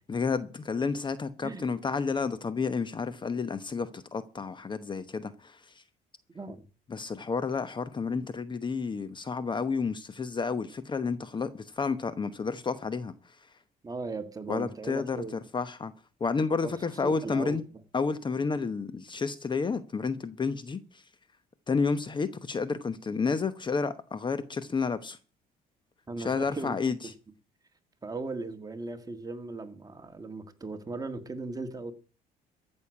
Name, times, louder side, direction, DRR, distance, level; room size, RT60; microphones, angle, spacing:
voice 1, 0.1-5.6 6.9-13.1 14.5-15.9 16.2-17.6 17.9-20.8 21.7-25.2 26.2-26.9, left 5 dB, 25° left, 1.0 m, -30 dB
voice 2, 6.3-6.6 13.8-15.4 16.6-16.8 17.0-17.6 26.1-26.8 27.0-27.1 28.0-31.9, right 3 dB, 20° right, 1.8 m, -37 dB
14.5 x 6.5 x 8.5 m
cardioid pair, 110°, 17 cm